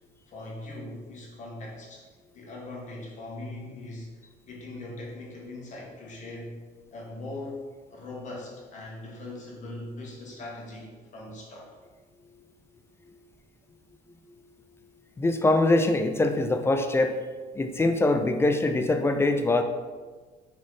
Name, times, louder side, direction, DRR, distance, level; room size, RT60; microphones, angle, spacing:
voice 1, 0.3-2.0 2.3-4.1 4.4-6.6 6.9-7.6 7.9-11.7, left 2 dB, 45° left, -2 dB, 1.2 m, -40 dB
voice 2, 15.2-17.1 17.6-19.6, left 2 dB, 15° left, 6 dB, 0.3 m, -23 dB
4.1 x 3.0 x 3.7 m, 1.4 s
cardioid pair, 110°, 17 cm